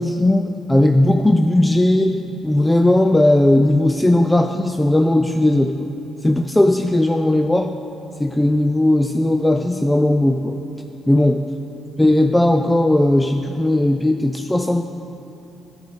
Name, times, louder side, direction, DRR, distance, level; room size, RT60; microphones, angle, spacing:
voice 1, 0.0-5.9 6.2-7.7 8.2-10.6 11.1-11.4 12.0-14.8, left 1 dB, 10° left, 6 dB, 0.3 m, -17 dB
9.7 x 5.2 x 8.0 m, 2.8 s
cardioid pair, 90°, 0 cm